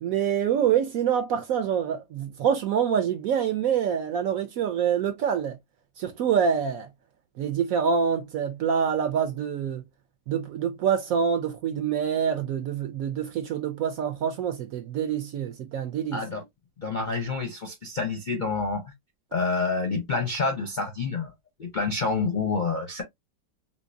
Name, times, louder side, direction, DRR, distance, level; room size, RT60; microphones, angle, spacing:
voice 1, 0.0-5.6 6.0-6.9 7.4-9.8 10.3-16.2, right 7 dB, 70° right, 0.8 m, -26 dB
voice 2, 16.1-16.4 16.8-18.9 19.3-21.3 21.6-23.0, left 4 dB, 55° left, 0.5 m, -28 dB
3.7 x 2.7 x 2.5 m
omnidirectional pair, 1.8 m